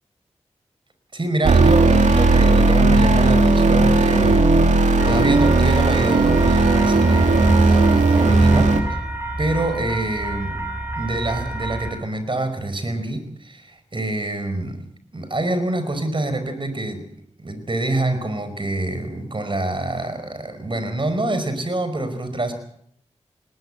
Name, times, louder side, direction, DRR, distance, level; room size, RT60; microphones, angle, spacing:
voice 1, 1.1-4.6 5.0-9.0 9.4-10.7 10.9-14.8 15.1-17.1 17.4-22.5, right 2 dB, 45° right, 10 dB, 4.9 m, -26 dB
sound 1, 1.4-8.8, right 3 dB, 80° right, 2.6 m, -16 dB
sound 2, 5.0-11.9, right 2 dB, 20° right, 4.7 m, -28 dB
19.5 x 19.0 x 7.7 m, 0.68 s
cardioid pair, 45°, 12 cm